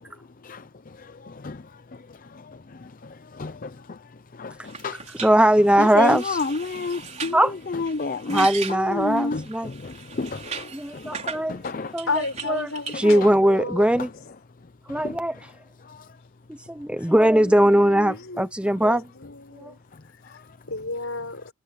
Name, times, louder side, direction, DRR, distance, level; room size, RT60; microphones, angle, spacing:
voice 1, 1.3-1.6 3.4-3.7 4.4-5.0 5.8-7.4 7.7-8.5 8.8-10.7 10.9-11.9 14.9-15.1, left 3 dB, 40° left, 0.6 m, -30 dB
sound 1, 4.6-11.4 12.0-13.3, right 6 dB, 30° right, 3.9 m, -38 dB
voice 2, 5.1-6.4 7.3-7.5 8.3-9.7 10.7-11.6 11.9-14.1 14.9-15.4 16.5-19.1 19.6-19.7, right 1 dB, 5° right, 0.6 m, -20 dB
voice 3, 12.1-13.9 17.4-18.5 18.8-19.8 20.7-21.4, left 3 dB, 70° left, 4.9 m, -32 dB
head